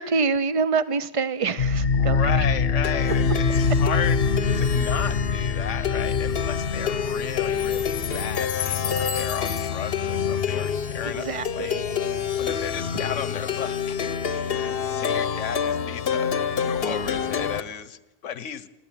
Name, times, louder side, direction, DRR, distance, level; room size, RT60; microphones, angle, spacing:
voice 1, 0.0-2.4 11.2-11.8, right 4 dB, 30° right, 14 dB, 0.8 m, -26 dB
Plucked string instrument, 1.6-17.6, left 6 dB, 55° left, 1.1 m, -25 dB
voice 2, 1.9-4.3 4.5-14.2 14.5-16.3 16.6-18.7, left 8 dB, 80° left, 16 dB, 1.3 m, -34 dB
28.0 x 13.5 x 9.0 m, 1.0 s
omnidirectional pair, 1.2 m